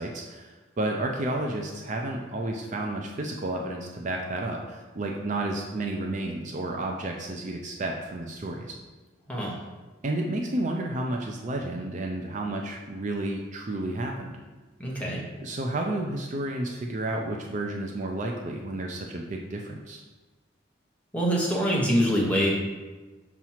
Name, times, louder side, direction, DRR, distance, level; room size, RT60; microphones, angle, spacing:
voice 1, 0.0-8.8 10.0-14.4 14.9-15.1 15.4-20.0, right 1 dB, 40° right, 1 dB, 0.4 m, -31 dB
voice 2, 14.8-15.2 21.1-22.5, equal, 5° left, -3 dB, 1.0 m, -24 dB
5.9 x 3.0 x 5.6 m, 1.2 s
head